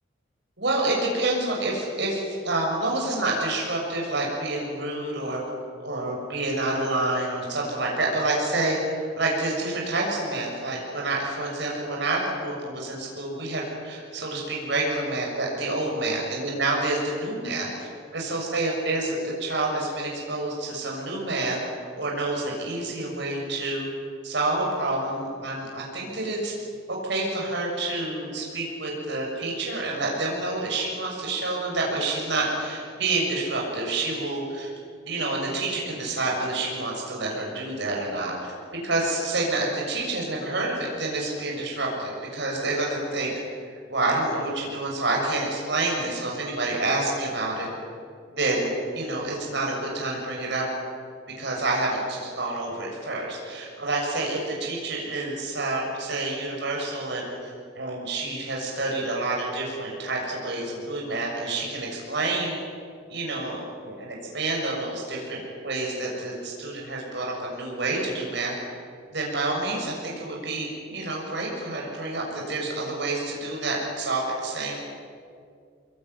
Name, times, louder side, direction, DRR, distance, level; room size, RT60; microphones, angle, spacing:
voice 1, 0.6-5.4 5.8-21.6 21.9-23.9 24.2-26.5 26.9-34.7 35.1-38.5 38.8-43.3 43.9-47.7 48.3-50.6 51.4-57.3 57.7-62.6 63.1-68.5 69.1-74.7, right 2 dB, 65° right, -2 dB, 6.8 m, -28 dB
24.5 x 22.0 x 9.6 m, 2.2 s
head